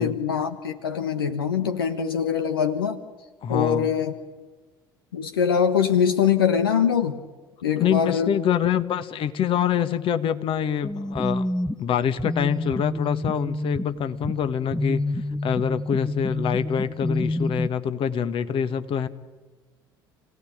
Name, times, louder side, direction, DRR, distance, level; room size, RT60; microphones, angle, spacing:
voice 1, 0.0-3.0 3.5-4.1 5.1-7.2 7.6-8.3, left 7 dB, 80° left, 8 dB, 1.3 m, -23 dB
voice 2, 3.4-3.9 7.8-11.5 11.8-15.0 15.4-19.1, left 8 dB, 50° left, 11 dB, 1.8 m, -25 dB
sound 1, 10.8-17.7, left 1 dB, 5° left, 1.2 m, -28 dB
29.0 x 17.5 x 8.8 m, 1.3 s
figure-of-eight pair, 60°, 12 cm